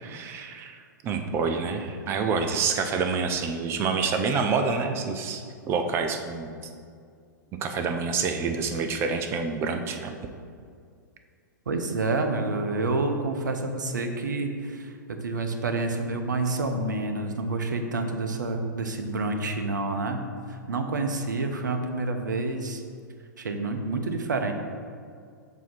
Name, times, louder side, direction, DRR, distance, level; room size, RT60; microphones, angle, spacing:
voice 1, 0.0-6.5 7.6-10.1, right 5 dB, 25° right, 6 dB, 0.5 m, -27 dB
voice 2, 11.7-22.8 23.4-24.5, right 3 dB, 65° right, 5 dB, 0.7 m, -28 dB
7.1 x 2.8 x 5.9 m, 2.2 s
figure-of-eight pair, 105°, 11 cm